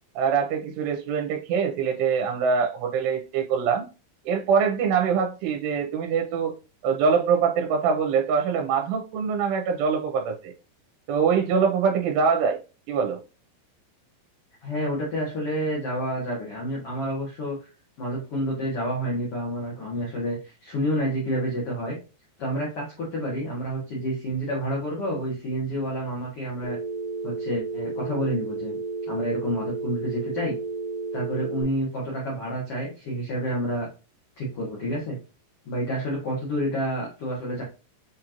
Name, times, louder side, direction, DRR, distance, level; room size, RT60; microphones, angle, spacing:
voice 1, 0.2-3.9 4.3-6.5 6.8-10.5 11.1-12.6 12.9-13.2, right 6 dB, 90° right, 3 dB, 2.8 m, -24 dB
voice 2, 14.6-17.6 18.0-22.0 22.4-26.8 27.2-28.8 29.1-30.6 31.1-33.9 34.4-35.2 35.6-37.6, equal, 80° left, -3 dB, 1.3 m, -29 dB
Telephone, 26.6-31.6, right 3 dB, 60° left, 2.0 m, -32 dB
7.3 x 2.9 x 2.5 m, 0.32 s
omnidirectional pair, 4.8 m